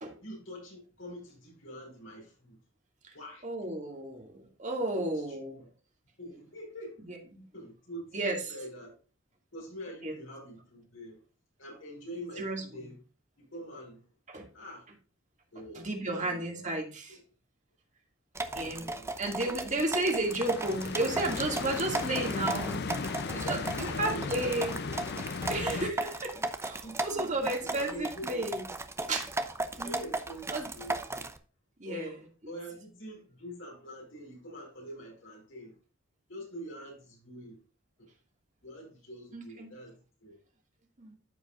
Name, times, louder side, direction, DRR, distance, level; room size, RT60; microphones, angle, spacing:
voice 1, 0.2-2.6 3.1-3.5 4.9-5.7 6.2-7.0 7.5-8.9 9.5-11.2 11.6-13.0 13.4-14.0 14.5-14.9 15.5-16.6 17.1-17.2 18.4-19.1 19.4-19.7 23.3-24.7 26.3-26.5 26.8-28.5 29.6-31.3 31.8-35.8 36.3-37.6 38.0-38.1 38.6-40.4, equal, 70° left, 4.6 m, -45 dB
voice 2, 3.4-5.6 7.1-7.4 8.1-8.4 10.0-10.1 12.4-12.6 14.3-14.5 15.6-17.2 18.5-18.8 19.2-22.9 23.3-24.7 25.5-26.4 26.6-28.7 29.1-29.3 29.8-30.0 30.5-30.7 31.8-32.1 39.3-39.7 41.0-41.2, right 2 dB, 40° right, 2.2 m, -33 dB
sound 1, 18.4-31.4, right 2 dB, 15° right, 0.7 m, -36 dB
sound 2, 20.2-25.9, left 4 dB, 55° left, 0.6 m, -36 dB
13.5 x 5.1 x 2.5 m
head